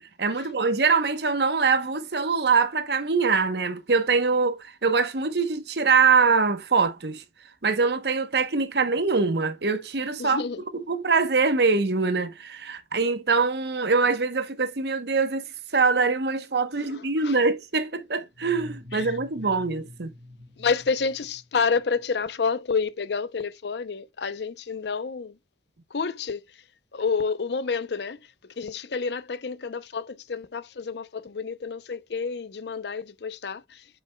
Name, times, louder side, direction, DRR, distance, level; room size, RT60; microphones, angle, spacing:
voice 1, 0.2-7.2 7.6-10.4 10.7-20.1, right 4 dB, 65° right, 0.9 m, -23 dB
voice 2, 10.2-10.6 16.8-17.4 18.9-19.2 20.6-25.4 25.9-26.6 26.9-33.9, left 5 dB, 70° left, 0.6 m, -29 dB
sound 1, 18.3-22.0, left 1 dB, 35° right, 1.3 m, -45 dB
8.0 x 6.1 x 2.2 m
head